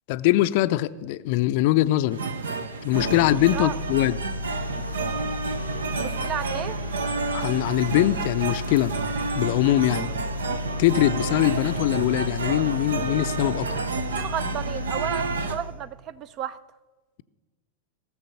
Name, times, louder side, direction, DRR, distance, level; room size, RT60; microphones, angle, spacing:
voice 1, 0.1-2.2 2.8-4.2 7.3-8.9 9.3-10.1 10.8-13.7, left 15 dB, 50° left, 15 dB, 0.5 m, -22 dB
sound 1, 2.1-15.6, right 4 dB, 70° right, 0.9 m, -31 dB
sound 2, 2.9-15.9, left 1 dB, 90° right, 1.3 m, -33 dB
voice 2, 6.0-6.8 14.1-16.6, right 9 dB, 35° right, 16 dB, 0.5 m, -32 dB
17.5 x 7.0 x 6.6 m, 1.2 s
figure-of-eight pair, 90°, 0 cm